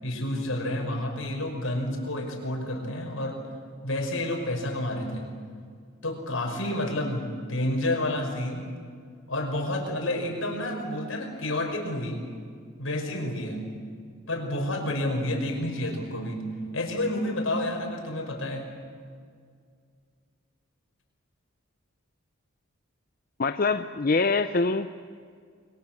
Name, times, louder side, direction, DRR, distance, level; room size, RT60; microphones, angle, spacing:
voice 1, 0.0-3.4 3.8-5.2 6.0-8.7 9.3-12.2 12.8-13.6 14.3-16.4 16.7-18.7, left 1 dB, 75° left, 2 dB, 5.2 m, -29 dB
voice 2, 23.4-24.9, left 3 dB, 45° left, 9 dB, 0.6 m, -24 dB
29.0 x 22.0 x 7.3 m, 2.1 s
head